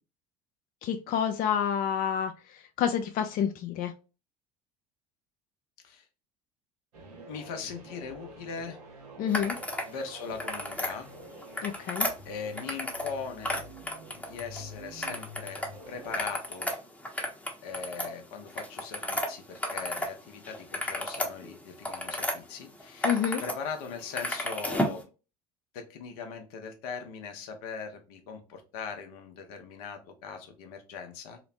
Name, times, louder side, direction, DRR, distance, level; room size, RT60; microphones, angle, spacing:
voice 1, 0.8-3.9 9.2-9.6 11.6-12.1 23.0-23.4, left 8 dB, 45° left, 6 dB, 0.4 m, -29 dB
sound 1, 6.9-16.3, right 1 dB, 85° right, 0.9 m, -48 dB
voice 2, 7.3-8.8 9.9-11.1 12.2-13.6 14.1-16.7 17.6-25.0 25.7-31.4, left 6 dB, 75° left, 5 dB, 0.7 m, -40 dB
sound 2, 9.3-9.9 10.2-10.9 11.4-13.1 13.4-14.6 15.0-15.7 16.0-20.1 20.4-22.3 22.8-23.5 23.8-25.0, left 1 dB, 5° left, 0.8 m, -33 dB
3.0 x 2.0 x 2.6 m, 0.32 s
hypercardioid pair, 70°, 20 cm